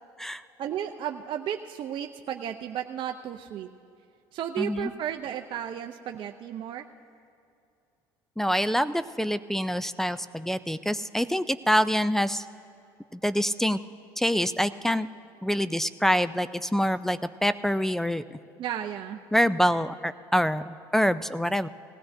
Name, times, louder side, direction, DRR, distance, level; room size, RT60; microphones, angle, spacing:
voice 1, 0.6-3.7 4.3-6.8 18.6-19.2, right 10 dB, 55° right, 5 dB, 0.5 m, -33 dB
voice 2, 4.6-4.9 8.4-12.4 13.1-13.8 14.2-15.1 15.4-18.2 19.3-21.7, equal, 5° left, 14 dB, 0.4 m, -26 dB
19.5 x 16.0 x 2.6 m, 2.5 s
supercardioid pair, 80°, 10 cm